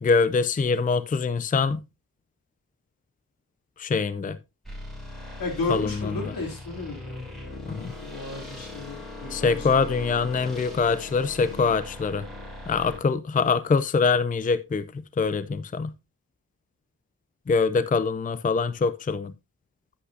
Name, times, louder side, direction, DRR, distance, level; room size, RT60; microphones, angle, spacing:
voice 1, 0.0-1.8 3.8-4.4 5.7-6.2 7.7-7.9 9.3-12.3 12.7-14.9 15.2-15.9 17.5-19.3, left 4 dB, 25° left, 0.5 m, -24 dB
sound 1, 4.6-13.0, left 2 dB, ahead, 6.7 m, -39 dB
voice 2, 5.4-9.7, left 3 dB, 80° left, 3.1 m, -34 dB
9.9 x 8.5 x 2.7 m
cardioid pair, 80°, 33 cm